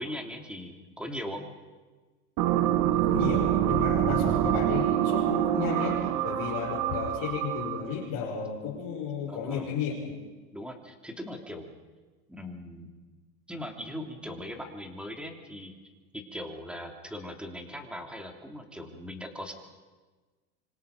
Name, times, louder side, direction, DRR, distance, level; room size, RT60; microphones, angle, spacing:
voice 1, 0.0-1.4 9.3-9.7 10.5-11.7 12.3-12.9 13.5-15.7 16.1-19.5, left 1 dB, ahead, 3 dB, 3.1 m, -39 dB
sound 1, 2.4-8.0, right 11 dB, 45° right, 1.6 m, -26 dB
voice 2, 2.9-10.1, left 6 dB, 45° left, -5 dB, 5.8 m, -33 dB
26.0 x 25.5 x 5.3 m, 1.3 s
supercardioid pair, 125°, 45 cm